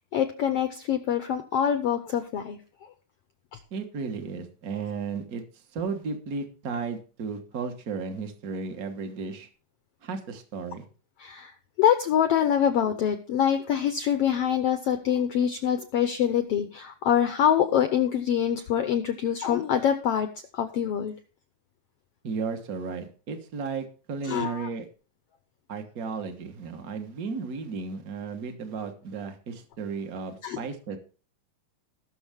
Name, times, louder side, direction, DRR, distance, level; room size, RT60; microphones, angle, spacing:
voice 1, 0.1-2.6 11.2-11.5 11.8-20.3 20.5-21.1 24.2-24.7 30.4-30.6, left 9 dB, 85° left, 8 dB, 1.3 m, -25 dB
voice 2, 3.7-9.5 10.0-10.8 22.2-24.9 25.7-31.0, right 5 dB, 70° right, 6 dB, 0.8 m, -34 dB
19.5 x 6.5 x 3.6 m, 0.36 s
omnidirectional pair, 3.7 m